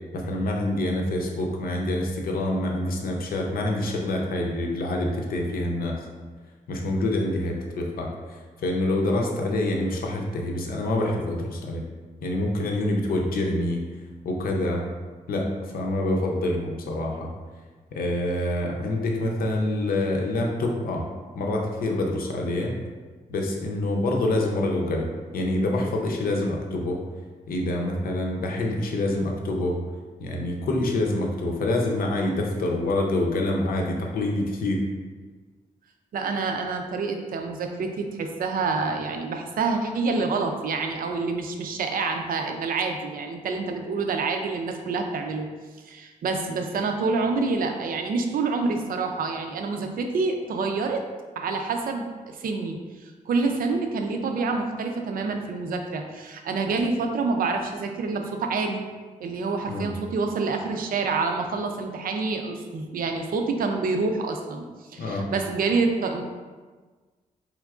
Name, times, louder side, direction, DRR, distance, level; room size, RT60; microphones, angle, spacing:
voice 1, 0.1-6.0 6.7-11.8 12.2-13.8 14.2-14.8 15.3-17.3 17.9-21.1 21.3-22.8 23.3-27.0 27.5-29.8 30.2-34.9 59.7-59.9 65.0-65.3, left 1 dB, 90° left, 0 dB, 0.6 m, -26 dB
voice 2, 36.1-45.5 45.8-51.0 51.4-52.8 53.0-58.9 59.2-64.7 64.9-66.2, right 4 dB, 80° right, 4 dB, 0.5 m, -27 dB
4.4 x 3.5 x 2.4 m, 1.4 s
cardioid pair, 95°, 15 cm